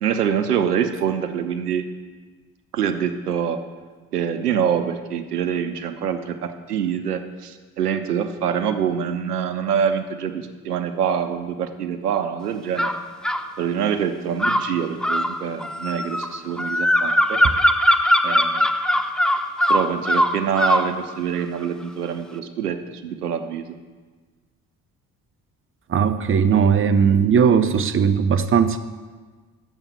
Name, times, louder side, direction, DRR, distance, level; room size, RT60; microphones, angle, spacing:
voice 1, 0.0-1.9 2.7-3.6 4.1-12.9 13.6-17.4 18.2-18.7 19.7-23.7, right 8 dB, 85° right, 9 dB, 0.6 m, -25 dB
sound 1, 12.8-13.5 14.4-20.9, equal, ahead, 0.3 m, -20 dB
voice 2, 25.9-28.8, right 7 dB, 30° right, 10 dB, 0.7 m, -18 dB
7.1 x 7.0 x 7.0 m, 1.4 s
figure-of-eight pair, 50°, 45 cm